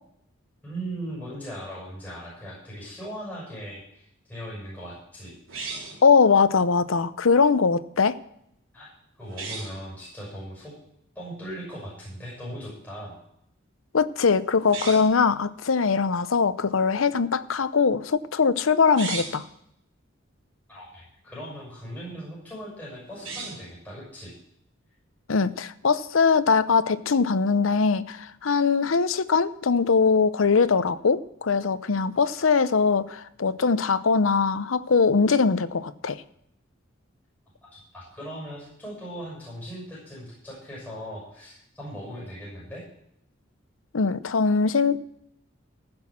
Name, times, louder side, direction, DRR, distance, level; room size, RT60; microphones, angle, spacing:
voice 1, 0.6-5.4 8.7-8.9 9.2-10.7 11.1-13.1 20.7-24.3 37.7-42.8, equal, 10° left, -6 dB, 6.1 m, -39 dB
sound 1, 5.5-6.1 9.2-9.8 14.6-15.2 18.8-19.5 23.1-23.7, right 4 dB, 85° right, 4.6 m, -36 dB
voice 2, 6.0-8.2 13.9-19.4 25.3-36.2 43.9-45.0, left 5 dB, 80° left, 14 dB, 0.7 m, -21 dB
15.0 x 6.1 x 7.3 m, 0.75 s
head